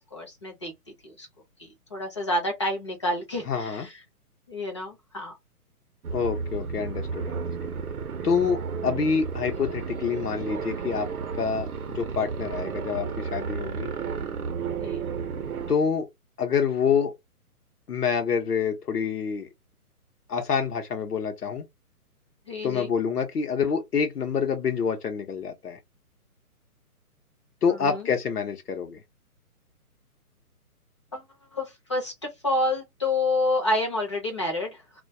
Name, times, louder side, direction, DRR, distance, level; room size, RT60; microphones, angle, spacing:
voice 1, 0.1-0.7 1.0-1.3 1.6-4.0 4.5-5.3 14.8-15.0 22.5-22.9 27.7-28.0 31.1-31.2 31.5-34.8, left 2 dB, 20° left, 0.5 m, -29 dB
voice 2, 3.5-3.9 6.1-7.7 8.2-13.9 15.7-16.1 16.4-17.1 17.9-19.5 20.3-21.6 22.6-25.8 27.6-29.0, left 6 dB, 80° left, 0.7 m, -27 dB
sound 1, 6.0-15.7, right 6 dB, 70° right, 0.7 m, -32 dB
2.2 x 2.2 x 2.6 m
figure-of-eight pair, 135°, 46 cm